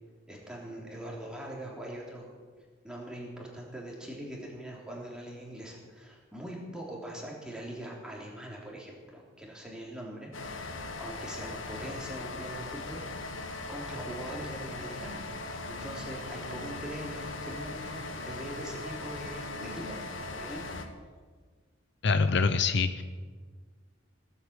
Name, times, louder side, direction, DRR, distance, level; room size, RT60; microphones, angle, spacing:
voice 1, 0.3-2.3 2.8-13.3 13.7-15.3 15.6-20.0 20.3-20.6, equal, 5° right, -3 dB, 3.3 m, -42 dB
sound 1, 10.3-20.9, left 2 dB, 80° left, 1.5 m, -39 dB
voice 2, 22.0-23.0, left 4 dB, 60° left, 10 dB, 0.6 m, -25 dB
17.5 x 8.2 x 8.2 m, 1.5 s
head